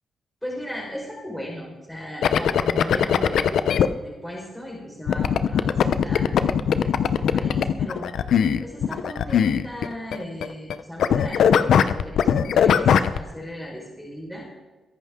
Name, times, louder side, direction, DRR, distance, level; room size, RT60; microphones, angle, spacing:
voice 1, 0.4-3.5 4.0-8.1 8.6-11.4 11.8-14.5, equal, 5° left, -3 dB, 4.7 m, -37 dB
sound 1, 2.2-3.9 5.1-10.2 10.4-10.7 11.0-13.2, left 8 dB, 80° left, 0.7 m, -20 dB
22.0 x 11.0 x 3.7 m, 1.2 s
cardioid pair, 90°, 0 cm